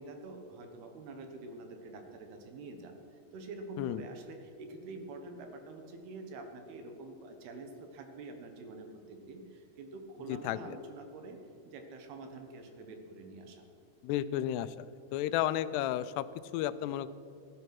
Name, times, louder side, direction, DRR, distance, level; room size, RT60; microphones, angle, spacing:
voice 1, 0.0-11.4 11.6-13.6, right 2 dB, 75° right, 5 dB, 3.3 m, -46 dB
voice 2, 10.3-10.8 14.0-14.9 15.1-16.3 16.5-17.1, left 12 dB, 90° left, 15 dB, 2.7 m, -32 dB
17.0 x 12.0 x 6.0 m, 2.6 s
omnidirectional pair, 4.7 m